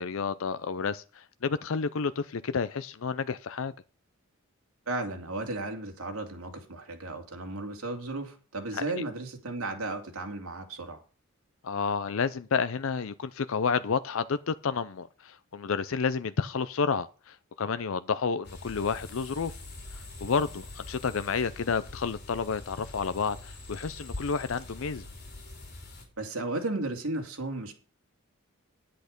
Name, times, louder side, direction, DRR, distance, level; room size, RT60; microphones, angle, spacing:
voice 1, 0.0-3.7 8.7-9.0 11.6-19.5 19.9-25.1, left 5 dB, 70° left, 0.5 m, -30 dB
voice 2, 4.9-11.0 26.2-27.7, right 2 dB, 90° right, 2.5 m, -34 dB
sound 1, 18.4-26.0, left 2 dB, 50° left, 4.1 m, -44 dB
10.5 x 8.6 x 5.2 m
head